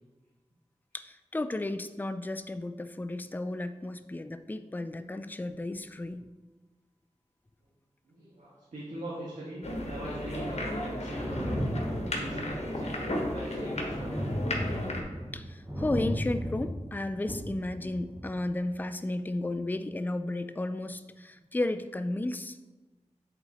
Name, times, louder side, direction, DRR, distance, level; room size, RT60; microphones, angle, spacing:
voice 1, 0.9-6.3 15.3-22.6, left 2 dB, 15° left, 10 dB, 0.4 m, -33 dB
voice 2, 8.1-11.7 12.1-14.1 17.4-17.5, right 1 dB, 80° right, -6 dB, 1.3 m, -41 dB
sound 1, 9.6-15.0, left 1 dB, 60° left, 1.2 m, -34 dB
Thunder, 11.1-18.5 19.6-19.7, equal, 20° right, 2.3 m, -35 dB
8.0 x 3.7 x 4.2 m, 1.2 s
cardioid pair, 40°, 12 cm